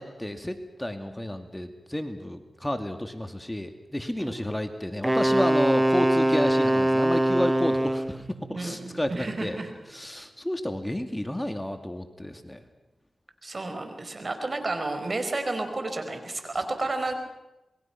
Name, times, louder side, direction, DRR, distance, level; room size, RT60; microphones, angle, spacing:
voice 1, 0.0-9.6 9.9-12.6, left 1 dB, 15° left, 7 dB, 2.3 m, -31 dB
Wind instrument woodwind instrument, 5.0-8.2, right 1 dB, 15° right, 0.8 m, -22 dB
sound 1, 6.0-10.1, right 6 dB, 70° right, 6.7 m, -49 dB
voice 2, 8.5-9.7 13.4-17.1, right 2 dB, 50° right, 7 dB, 4.5 m, -31 dB
27.0 x 21.5 x 5.9 m, 0.99 s
cardioid pair, 45°, 0 cm